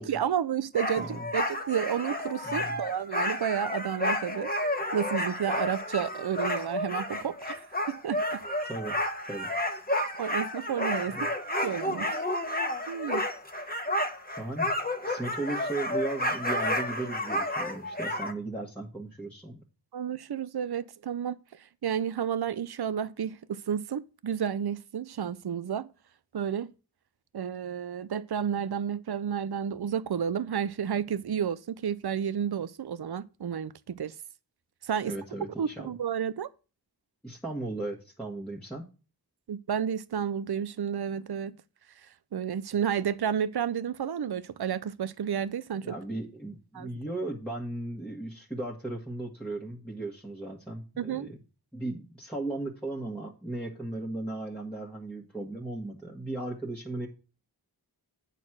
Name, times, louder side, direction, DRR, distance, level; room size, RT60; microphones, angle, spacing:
voice 1, 0.0-4.5 4.9-7.6 7.9-8.4 10.2-11.3 11.6-12.2 12.9-13.2 19.9-21.4 21.8-25.9 26.3-26.7 27.3-34.1 34.8-35.1 35.6-36.5 39.5-41.5 42.3-45.9 46.7-46.9 51.0-51.3, right 8 dB, 75° right, 0.5 m, -31 dB
sound 1, 0.7-18.3, left 1 dB, 25° left, 1.2 m, -31 dB
voice 2, 1.0-1.3 2.4-2.8 8.6-9.0 9.2-9.5 11.1-11.3 14.4-14.7 15.0-19.6 35.0-35.9 37.2-38.9 45.8-51.4 51.7-57.1, right 2 dB, 5° left, 1.6 m, -36 dB
9.0 x 4.2 x 6.1 m
wide cardioid pair, 45°, 39 cm